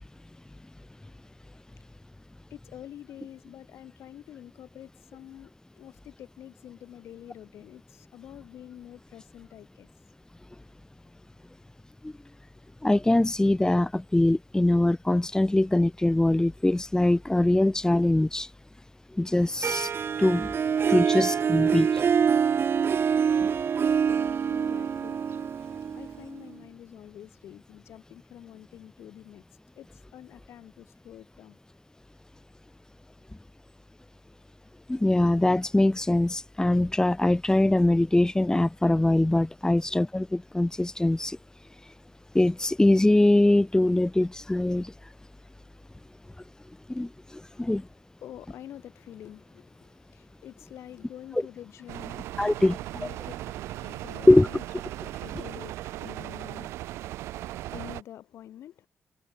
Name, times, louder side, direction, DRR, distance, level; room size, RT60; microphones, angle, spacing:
voice 1, 2.5-9.9 24.5-25.2 25.9-29.4 29.7-31.6 47.5-53.4 53.8-54.6 55.0-58.9, left 11 dB, 80° left, 6.3 m, -47 dB
voice 2, 12.8-18.5 19.2-19.9 20.2-20.5 20.9-21.9 34.9-41.4 42.3-44.9 46.9-47.1 47.6-47.8 52.4-52.8 54.3-54.5, left 1 dB, 15° left, 1.6 m, -22 dB
Harp, 19.6-26.5, right 7 dB, 60° right, 1.8 m, -25 dB
sound 1, 51.9-58.0, right 15 dB, 90° right, 1.2 m, -38 dB
supercardioid pair, 50°, 4 cm